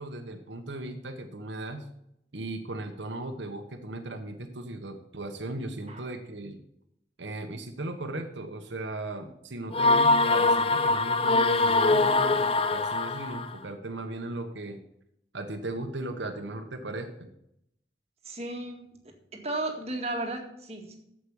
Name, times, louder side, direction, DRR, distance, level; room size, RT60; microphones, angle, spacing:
voice 1, 0.0-1.9 2.3-6.6 7.2-14.8 15.3-17.3, right 2 dB, 85° right, 5 dB, 1.2 m, -37 dB
sound 1, 9.7-13.5, left 3 dB, 30° left, 0.5 m, -23 dB
voice 2, 18.3-18.9 19.3-21.0, right 2 dB, 35° right, 2 dB, 2.0 m, -34 dB
8.2 x 7.7 x 7.1 m, 0.76 s
head